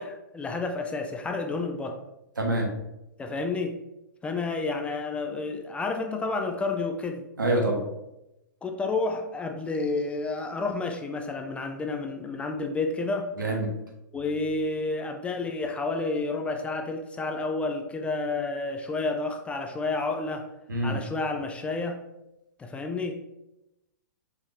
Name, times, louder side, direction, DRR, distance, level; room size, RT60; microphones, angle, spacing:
voice 1, 0.0-2.0 3.2-3.8 4.2-7.3 8.6-13.3 14.1-20.4 20.8-22.0 22.6-23.1, left 3 dB, 10° left, 4 dB, 0.4 m, -30 dB
voice 2, 2.4-2.7 7.4-7.8 13.4-13.7 20.7-21.0, right 1 dB, 90° right, 0 dB, 1.1 m, -25 dB
4.7 x 2.7 x 3.4 m, 0.91 s
hypercardioid pair, 115°, 10 cm